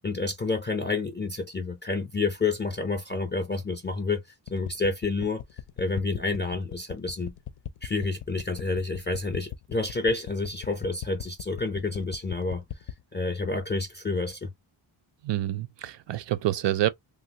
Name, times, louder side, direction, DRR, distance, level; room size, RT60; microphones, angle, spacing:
voice 1, 0.0-4.2 4.5-5.4 5.8-7.3 7.8-12.6 13.1-14.5, left 3 dB, 25° left, 0.4 m, -29 dB
sound 1, 4.5-13.0, left 12 dB, 90° left, 0.6 m, -38 dB
voice 2, 15.2-16.9, right 13 dB, 60° right, 0.5 m, -27 dB
3.2 x 2.4 x 2.8 m
wide cardioid pair, 150°, 49 cm